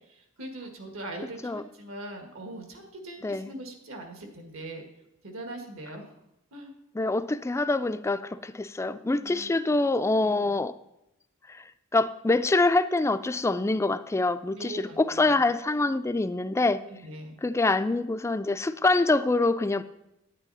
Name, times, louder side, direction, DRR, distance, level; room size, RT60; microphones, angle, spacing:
voice 1, 0.1-4.9 5.2-6.1 6.5-6.7 9.1-9.5 10.2-10.6 14.5-15.4 16.8-17.4, right 1 dB, 75° right, 4 dB, 1.8 m, -41 dB
voice 2, 6.9-10.7 11.5-11.6 11.9-16.8 17.4-19.8, left 2 dB, 15° left, 12 dB, 0.3 m, -25 dB
9.7 x 9.3 x 4.1 m, 0.87 s
head